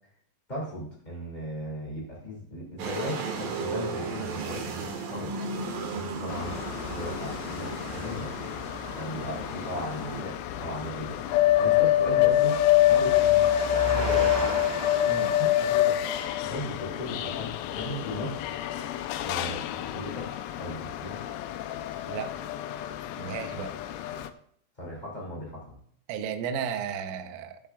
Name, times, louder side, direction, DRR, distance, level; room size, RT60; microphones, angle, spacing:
voice 1, 0.5-5.3 5.9-6.5 6.9-8.3 9.0-11.2 11.6-14.5 15.4-18.4 19.2-21.2 24.8-25.8, left 1 dB, 60° left, -5 dB, 0.4 m, -37 dB
sound 1, 2.8-10.2, right 4 dB, 60° right, 2.5 m, -35 dB
sound 2, 6.3-24.3, left 13 dB, 90° left, 3.5 m, -27 dB
Engine, 10.5-16.2, right 1 dB, 30° right, 0.4 m, -36 dB
voice 2, 23.2-23.8 26.1-27.6, right 7 dB, 80° right, 8 dB, 3.4 m, -34 dB
20.5 x 7.3 x 2.4 m, 0.65 s
omnidirectional pair, 6.0 m